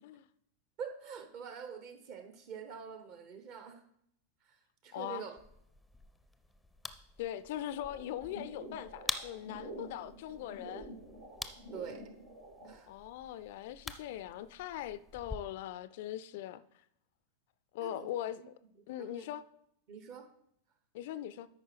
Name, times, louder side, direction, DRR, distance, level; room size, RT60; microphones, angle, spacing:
voice 1, 0.8-3.8 4.4-5.4 11.7-12.0 12.6-12.9 17.8-18.1 18.4-18.5 18.8-19.3 19.9-20.3, right 6 dB, 45° right, 1.0 m, -45 dB
voice 2, 4.9-5.3 7.2-10.9 12.9-16.6 17.7-18.4 18.9-19.4 20.9-21.5, left 12 dB, 50° left, 0.3 m, -40 dB
sound 1, 5.4-15.4, left 2 dB, 5° left, 0.5 m, -47 dB
sound 2, 7.7-12.7, right 1 dB, 70° right, 2.7 m, -48 dB
13.0 x 5.3 x 3.4 m
figure-of-eight pair, 90°, 0 cm